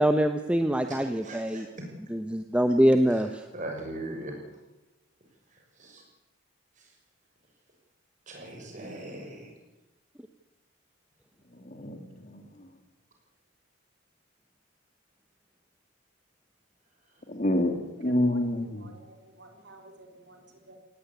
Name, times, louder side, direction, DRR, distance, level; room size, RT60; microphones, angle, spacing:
voice 1, 0.0-1.7 2.1-3.4, equal, 5° right, 0.9 m, -24 dB
voice 2, 0.9-1.7 3.1-3.2 3.5-4.3 5.8-6.0 8.3-9.5, right 1 dB, 40° right, 6.3 m, -39 dB
voice 3, 11.5-12.7 17.3-17.7 18.0-18.9, left 1 dB, 40° left, 2.7 m, -28 dB
voice 4, 18.0-20.8, right 1 dB, 60° right, 3.9 m, -52 dB
18.5 x 17.0 x 9.6 m
head